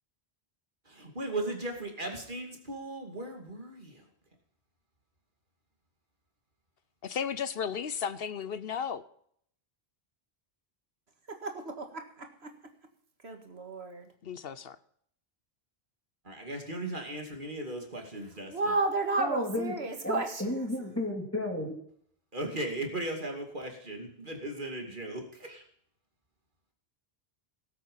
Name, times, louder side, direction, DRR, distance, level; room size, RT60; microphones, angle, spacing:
voice 1, 1.0-4.0 16.2-18.7 22.3-25.6, right 1 dB, 50° right, 2.8 m, -37 dB
voice 2, 7.0-9.0 14.2-14.8, left 7 dB, 70° left, 0.9 m, -34 dB
voice 3, 11.3-12.3 13.2-14.1 18.5-20.4, right 3 dB, 90° right, 2.1 m, -32 dB
voice 4, 19.2-19.7 20.0-21.7, left 1 dB, 15° left, 2.8 m, -32 dB
18.0 x 8.3 x 5.6 m
omnidirectional pair, 1.0 m